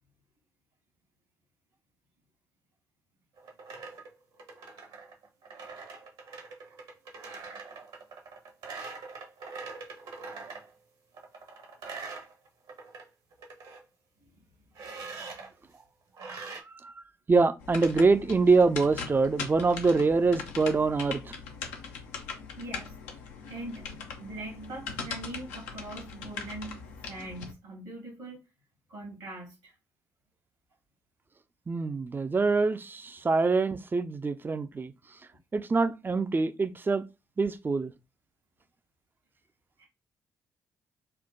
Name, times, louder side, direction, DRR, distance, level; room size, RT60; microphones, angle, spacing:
sound 1, 3.4-10.7 11.1-13.0 13.3-13.8 14.7-15.5 16.2-16.6, right 4 dB, 65° right, 1.1 m, -43 dB
voice 1, 17.3-21.3 31.7-34.9 35.5-37.0 37.4-37.9, right 4 dB, 25° right, 0.4 m, -25 dB
sound 2, 17.6-27.5, left 5 dB, 75° left, 0.6 m, -40 dB
voice 2, 22.6-22.9 23.5-23.9 24.2-26.8 27.1-28.4 28.9-29.7 39.8-39.9, right 2 dB, 85° right, 2.0 m, -42 dB
4.4 x 2.2 x 3.8 m
figure-of-eight pair, 40°, 9 cm